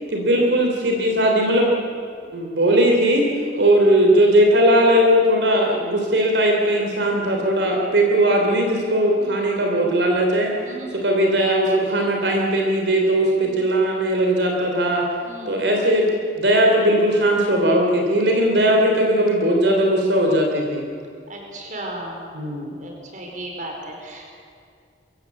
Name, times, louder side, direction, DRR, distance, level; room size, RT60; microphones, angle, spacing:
voice 1, 0.1-1.7 2.3-3.3 3.6-10.5 10.9-15.0 15.5-16.1 16.4-20.8 22.3-22.7, right 1 dB, 80° right, 1 dB, 3.3 m, -18 dB
voice 2, 9.1-9.5 10.6-11.1 13.4-13.6 15.2-15.7 21.3-24.3, right 1 dB, 45° right, 1 dB, 4.6 m, -37 dB
23.5 x 16.0 x 8.4 m, 2.2 s
head